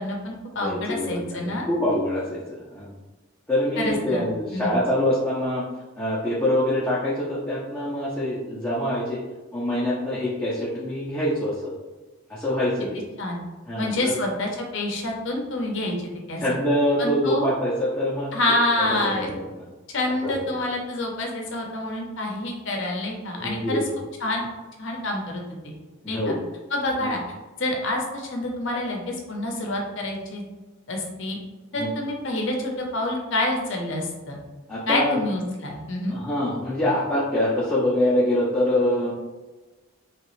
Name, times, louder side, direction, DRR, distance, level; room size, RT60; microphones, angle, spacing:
voice 1, 0.0-1.7 3.8-4.7 13.2-13.4 13.8-15.9 16.3-16.4 17.0-17.5 18.3-19.3 19.9-23.8 24.2-24.5 24.8-25.7 26.1-26.3 26.7-27.2 27.6-30.4 30.9-31.4 31.7-34.4 34.9-36.2, left 1 dB, 60° left, 1 dB, 0.7 m, -27 dB
voice 2, 0.6-2.9 3.5-5.7 6.0-9.2 9.5-11.7 12.3-13.0 13.7-14.2 16.4-18.3 19.2-19.3 19.5-19.6 20.2-20.3 23.4-23.8 26.0-26.4 27.0-27.1 31.8-31.9 34.7-35.2 36.1-39.1, left 1 dB, 10° left, -9 dB, 0.5 m, -25 dB
3.2 x 2.9 x 3.0 m, 1.2 s
head